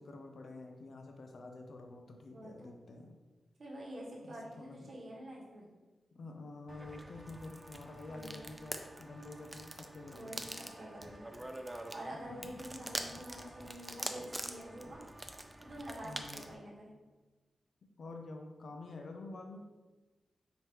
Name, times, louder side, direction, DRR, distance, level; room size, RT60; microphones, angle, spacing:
voice 1, 0.0-3.2 4.2-4.9 6.1-10.5 12.1-12.9 16.0-16.5 18.0-19.7, left 2 dB, 65° left, 3 dB, 0.5 m, -49 dB
voice 2, 2.3-2.7 3.6-5.6 8.0-8.5 10.1-11.3 11.9-15.0 15.6-17.0, right 1 dB, 50° right, -3 dB, 1.1 m, -47 dB
sound 1, 6.7-16.6, right 1 dB, 15° right, 0.3 m, -45 dB
5.0 x 3.0 x 3.0 m, 1.2 s
wide cardioid pair, 100°, 0 cm